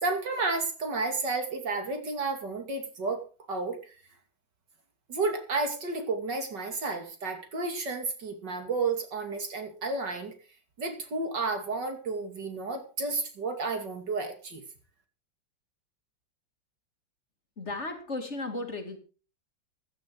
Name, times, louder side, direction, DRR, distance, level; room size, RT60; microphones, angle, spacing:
voice 1, 0.0-3.2 3.5-3.8 5.1-10.3 10.8-14.6, right 3 dB, 65° right, 6 dB, 3.2 m, -31 dB
voice 2, 17.6-19.0, left 2 dB, 35° left, 5 dB, 2.7 m, -35 dB
16.0 x 11.5 x 4.7 m, 0.36 s
omnidirectional pair, 2.0 m